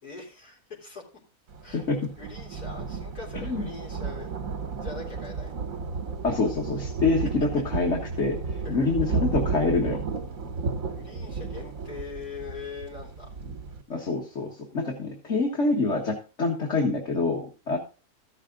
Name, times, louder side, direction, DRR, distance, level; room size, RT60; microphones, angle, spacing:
voice 1, 0.0-1.0 1.6-1.8 2.2-4.3 4.8-5.5 8.6-8.7 10.9-13.4, left 5 dB, 80° left, -2 dB, 4.1 m, -42 dB
Thunder, 1.5-13.8, right 5 dB, 65° right, 1.4 m, -33 dB
voice 2, 1.7-2.1 3.5-3.7 6.2-10.0 13.9-17.8, left 3 dB, 50° left, -1 dB, 1.9 m, -26 dB
14.0 x 6.6 x 3.8 m, 0.33 s
omnidirectional pair, 1.6 m